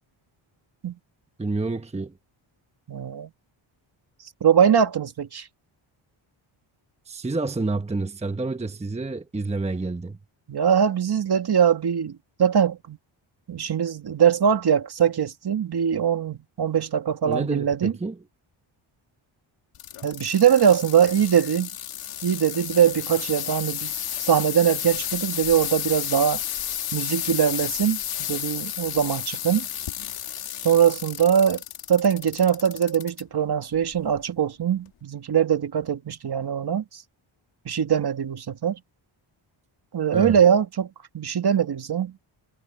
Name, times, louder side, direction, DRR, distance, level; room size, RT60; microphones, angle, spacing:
voice 1, 1.4-2.1 7.1-10.2 17.2-18.2 40.1-40.4, right 3 dB, 15° right, 1.0 m, -29 dB
voice 2, 2.9-3.3 4.4-5.5 10.5-13.0 13.5-17.9 20.0-21.7 22.2-26.4 26.9-29.7 30.6-31.6 31.9-37.0 37.7-38.8 39.9-40.9 41.1-42.1, right 8 dB, 50° right, 2.2 m, -22 dB
sound 1, 19.7-33.2 33.7-34.2 34.9-35.0, left 10 dB, 90° left, 2.8 m, -32 dB
cardioid pair, 105°, 50 cm